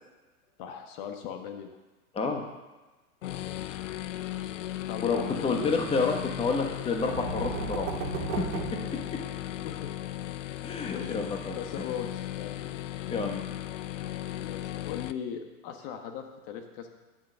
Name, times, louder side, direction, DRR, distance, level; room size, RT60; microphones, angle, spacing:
voice 1, 0.6-1.8 3.2-3.4 4.9-5.8 9.6-9.9 10.9-12.6 14.4-16.9, left 8 dB, 35° left, 5 dB, 1.4 m, -39 dB
sound 1, 3.2-15.1, left 13 dB, 55° left, 0.7 m, -36 dB
voice 2, 5.0-8.4 8.7-8.8 10.6-11.5 13.1-13.4, left 4 dB, 10° left, 3 dB, 1.3 m, -29 dB
sound 2, 6.7-9.7, right 6 dB, 55° right, 2.0 m, -36 dB
12.0 x 7.0 x 6.8 m, 1.2 s
hypercardioid pair, 110°, 45 cm